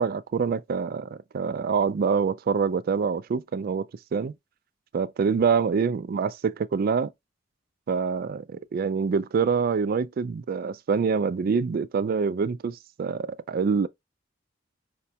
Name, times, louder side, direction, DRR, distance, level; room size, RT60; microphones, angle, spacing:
voice 1, 0.0-3.9 4.1-4.3 4.9-7.1 7.9-13.9, right 5 dB, 50° right, 0.3 m, -25 dB
4.9 x 2.2 x 2.8 m
head